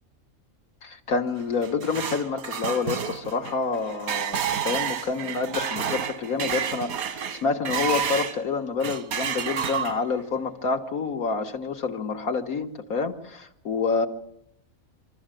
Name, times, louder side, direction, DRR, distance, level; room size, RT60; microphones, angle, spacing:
voice 1, 0.8-14.1, left 4 dB, 90° left, 4 dB, 2.2 m, -28 dB
sound 1, 1.4-8.4 8.8-10.2, right 8 dB, 90° right, 1.6 m, -30 dB
25.0 x 14.0 x 9.2 m, 0.75 s
omnidirectional pair, 1.5 m